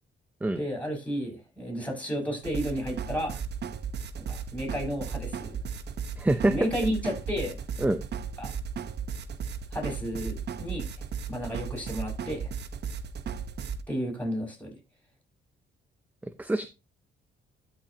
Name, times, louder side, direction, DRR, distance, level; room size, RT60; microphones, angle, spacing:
voice 1, 0.5-3.4 4.2-5.5 6.4-7.6 8.4-8.5 9.7-10.9 11.3-12.5 13.9-14.8, equal, 10° left, 6.4 m, -32 dB
sound 1, 2.4-13.8, right 6 dB, 60° right, 0.9 m, -35 dB
voice 2, 6.2-6.5 7.8-8.0 16.4-16.7, right 1 dB, 10° right, 0.6 m, -24 dB
12.5 x 6.1 x 2.9 m
cardioid pair, 90°, 20 cm